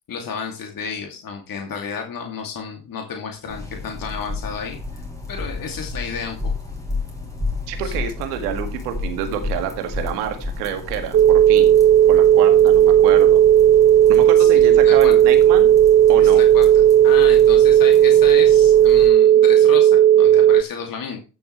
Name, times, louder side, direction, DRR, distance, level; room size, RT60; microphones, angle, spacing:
voice 1, 0.1-4.8 5.3-6.7 7.2-7.3 7.8-8.0 14.4-15.2 16.2-21.2, left 6 dB, 45° left, 3 dB, 2.6 m, -32 dB
sound 1, 3.5-19.1, left 3 dB, 5° left, 4.5 m, -32 dB
voice 2, 7.7-11.8 12.1-13.4 14.1-15.7 16.1-16.4, right 9 dB, 75° right, 6 dB, 2.1 m, -28 dB
sound 2, 11.1-20.6, right 11 dB, 30° right, 0.6 m, -13 dB
15.0 x 7.1 x 3.2 m, 0.32 s
hypercardioid pair, 55°, 47 cm